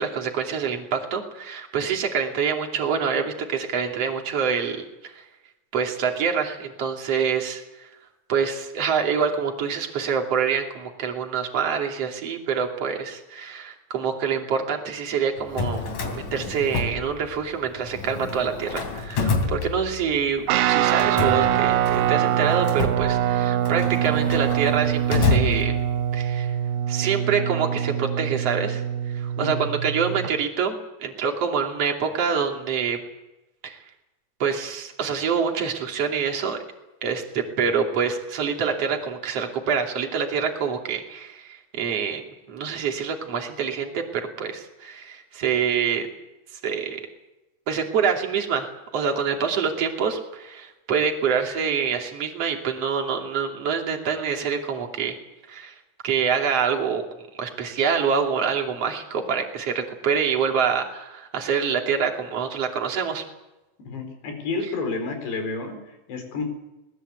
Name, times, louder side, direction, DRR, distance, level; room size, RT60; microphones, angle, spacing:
voice 1, 0.0-4.8 5.0-5.1 5.7-7.9 8.3-15.9 16.1-25.7 26.1-26.5 26.9-28.8 29.1-33.0 33.6-33.8 34.4-36.6 37.0-46.1 46.6-47.0 47.7-55.2 55.5-55.7 56.0-57.0 57.4-63.2, right 6 dB, 40° right, 2 dB, 3.3 m, -26 dB
Drawer open or close, 15.4-17.6 17.9-20.3 20.9-26.2, left 4 dB, 50° left, 4.2 m, -29 dB
Guitar, 20.5-30.3, right 11 dB, 75° right, 2.6 m, -24 dB
voice 2, 63.8-66.4, left 3 dB, 70° left, 6 dB, 6.4 m, -30 dB
21.5 x 20.0 x 8.1 m, 0.99 s
omnidirectional pair, 5.1 m